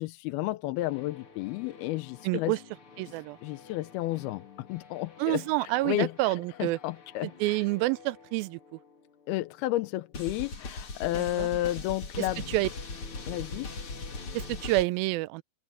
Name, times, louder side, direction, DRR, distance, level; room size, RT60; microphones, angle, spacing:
voice 1, 0.0-2.5 3.1-3.2 3.4-7.7 9.3-12.4 13.3-13.7, left 16 dB, 80° left, 2.6 m, -32 dB
sound 1, 0.8-9.2 10.1-14.8, left 3 dB, 35° left, 3.3 m, -43 dB
voice 2, 2.2-2.6 3.0-3.4 5.2-6.8 7.4-8.6 11.4-11.5 12.5-12.7 14.3-15.4, right 20 dB, 80° right, 2.2 m, -28 dB
open air
omnidirectional pair, 4.4 m